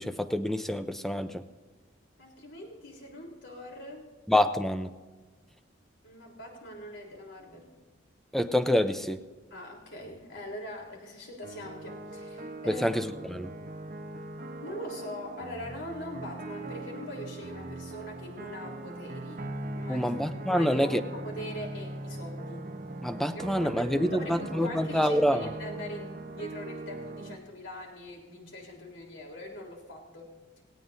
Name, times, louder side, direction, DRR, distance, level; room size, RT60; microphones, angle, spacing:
voice 1, 0.0-1.4 4.3-4.9 8.3-9.2 12.7-13.5 19.9-21.0 23.0-25.5, equal, ahead, 9 dB, 0.6 m, -27 dB
voice 2, 2.2-4.1 6.0-7.7 9.5-12.9 14.6-20.1 20.5-22.7 23.6-30.6, left 1 dB, 90° left, 0 dB, 3.7 m, -42 dB
sound 1, 11.4-27.4, right 2 dB, 45° right, 0.9 m, -40 dB
18.5 x 17.0 x 2.7 m, 1.3 s
head